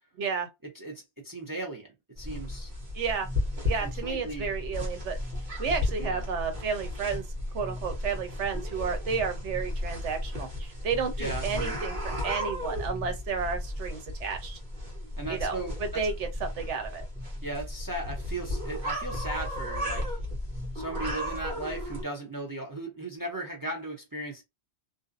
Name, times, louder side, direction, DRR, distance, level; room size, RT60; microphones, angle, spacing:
voice 1, 0.2-0.5 2.9-3.3 3.7-5.2 5.6-7.2 7.5-14.6 15.3-17.0, right 5 dB, 80° right, 1.0 m, -32 dB
voice 2, 0.7-1.9 2.2-2.7 3.8-4.5 6.0-6.3 11.2-11.5 15.2-16.0 17.4-20.2 20.7-24.4, right 2 dB, 30° right, 0.4 m, -37 dB
sound 1, 2.2-22.0, left 1 dB, 45° right, 1.1 m, -34 dB
2.6 x 2.0 x 2.4 m
omnidirectional pair, 1.2 m